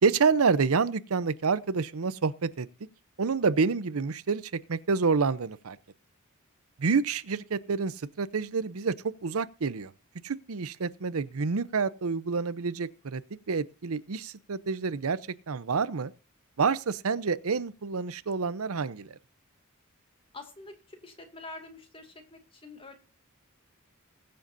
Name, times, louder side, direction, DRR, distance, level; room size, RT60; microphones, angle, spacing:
voice 1, 0.0-2.7 3.2-4.4 4.7-5.8 6.8-8.9 9.2-9.9 10.2-13.2 13.5-15.2 15.5-16.1 16.6-19.1, right 5 dB, 85° right, 0.7 m, -28 dB
voice 2, 20.3-22.9, left 3 dB, 25° left, 2.3 m, -46 dB
21.5 x 7.7 x 2.6 m
head